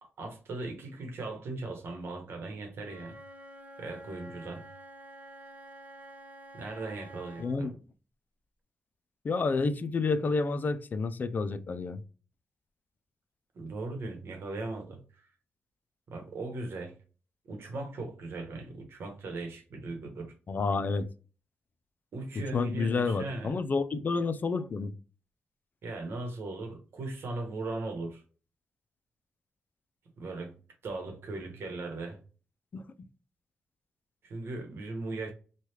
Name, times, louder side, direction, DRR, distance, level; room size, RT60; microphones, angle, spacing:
voice 1, 0.0-3.2 3.8-4.7 6.5-7.7 13.5-15.2 16.1-17.0 17.5-20.3 22.1-23.5 25.8-28.2 30.2-30.5 30.8-32.2 34.2-35.3, right 2 dB, 75° right, 1.0 m, -38 dB
Wind instrument woodwind instrument, 2.7-7.6, right 1 dB, 35° right, 0.6 m, -49 dB
voice 2, 7.4-7.7 9.2-12.0 20.5-21.1 22.5-24.9 32.7-32.8, left 4 dB, 45° left, 0.4 m, -29 dB
3.2 x 2.3 x 2.9 m
cardioid pair, 85°, 4 cm